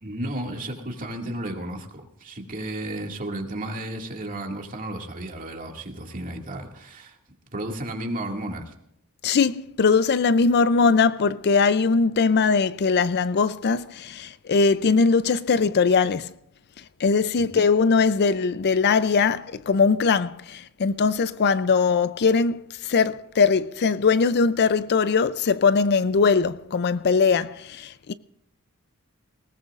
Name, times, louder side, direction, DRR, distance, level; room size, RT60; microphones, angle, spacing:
voice 1, 0.0-7.2 7.5-8.7 17.4-17.5, right 1 dB, 40° right, 2.2 m, -33 dB
voice 2, 9.2-16.3 17.0-28.1, left 5 dB, 50° left, 0.5 m, -21 dB
20.0 x 18.5 x 2.5 m
head